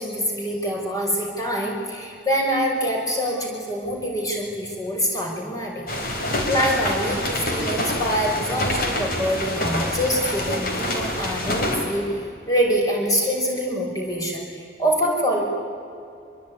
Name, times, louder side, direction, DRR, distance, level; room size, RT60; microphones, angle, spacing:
voice 1, 0.0-5.9 6.5-15.4, equal, 20° left, -1 dB, 6.0 m, -25 dB
sound 1, 5.9-11.8, left 1 dB, 50° left, 4.5 m, -26 dB
26.0 x 22.5 x 9.9 m, 2.5 s
head